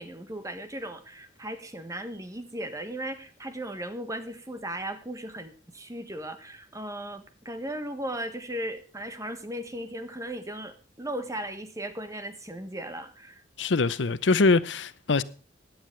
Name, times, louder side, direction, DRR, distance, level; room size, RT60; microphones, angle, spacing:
voice 1, 0.0-13.4, right 1 dB, 20° right, 1.5 m, -37 dB
voice 2, 13.6-15.2, left 3 dB, 90° left, 0.7 m, -23 dB
17.0 x 10.5 x 3.2 m
head